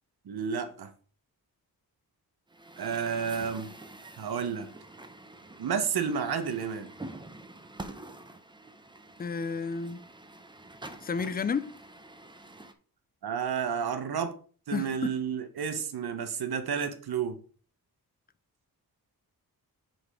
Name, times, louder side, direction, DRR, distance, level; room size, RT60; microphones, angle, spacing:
voice 1, 0.2-0.9 2.8-3.7 4.2-4.7 5.6-6.9 13.2-14.3 14.7-17.4, right 7 dB, 80° right, 1.1 m, -31 dB
Truck, 2.5-12.7, right 2 dB, 10° right, 0.7 m, -47 dB
voice 2, 9.2-10.1 11.0-11.8 14.7-15.2, left 5 dB, 25° left, 0.4 m, -32 dB
6.0 x 5.3 x 4.9 m
wide cardioid pair, 125°, 38 cm